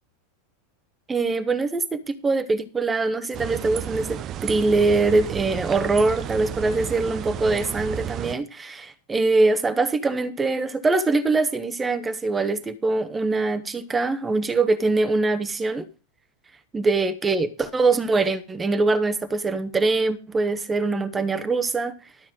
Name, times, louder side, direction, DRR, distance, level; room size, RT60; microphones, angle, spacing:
voice 1, 1.1-15.9 16.7-21.9, right 3 dB, 15° right, 1.1 m, -23 dB
sound 1, 3.3-8.4, right 10 dB, 35° right, 0.6 m, -32 dB
12.5 x 5.7 x 6.2 m
figure-of-eight pair, 90°, 0 cm